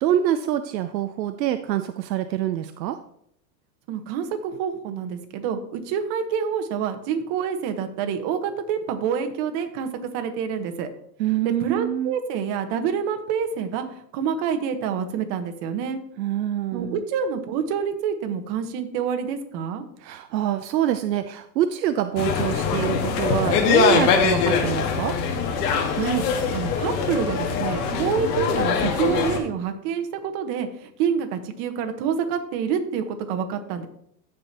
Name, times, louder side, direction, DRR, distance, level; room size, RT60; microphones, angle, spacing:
voice 1, 0.0-3.0 11.2-12.1 16.2-17.0 20.0-25.2, right 11 dB, 80° right, 10 dB, 0.6 m, -25 dB
voice 2, 3.9-10.9 11.4-13.8 14.1-16.0 16.7-19.8 26.0-26.2 26.5-33.9, right 7 dB, 50° right, 6 dB, 1.3 m, -27 dB
sound 1, 22.2-29.4, left 5 dB, 65° left, 1.7 m, -23 dB
14.5 x 5.1 x 2.9 m, 0.71 s
hypercardioid pair, 105°, 50 cm